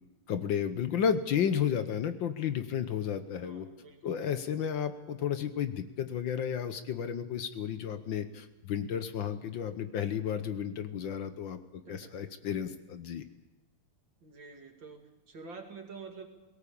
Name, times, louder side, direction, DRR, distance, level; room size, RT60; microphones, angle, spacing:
voice 1, 0.3-3.7 4.0-13.2, left 8 dB, 65° left, 10 dB, 1.6 m, -32 dB
voice 2, 3.4-4.3 5.2-5.4 11.9-12.2 14.2-16.3, right 4 dB, 60° right, 4 dB, 3.0 m, -48 dB
18.5 x 17.5 x 8.5 m, 1.1 s
omnidirectional pair, 2.4 m